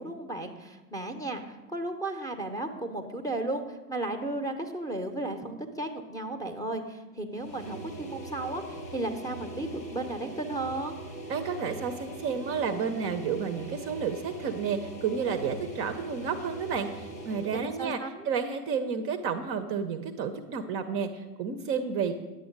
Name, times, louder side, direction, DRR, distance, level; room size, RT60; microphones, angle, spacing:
voice 1, 0.0-11.0 17.5-18.3, right 2 dB, 5° left, 5 dB, 0.8 m, -34 dB
sound 1, 7.3-17.7, right 2 dB, 90° left, 1.7 m, -41 dB
voice 2, 11.3-18.0 18.2-22.2, right 6 dB, 30° right, 7 dB, 0.6 m, -31 dB
10.0 x 7.7 x 5.2 m, 1.1 s
figure-of-eight pair, 95°, 48 cm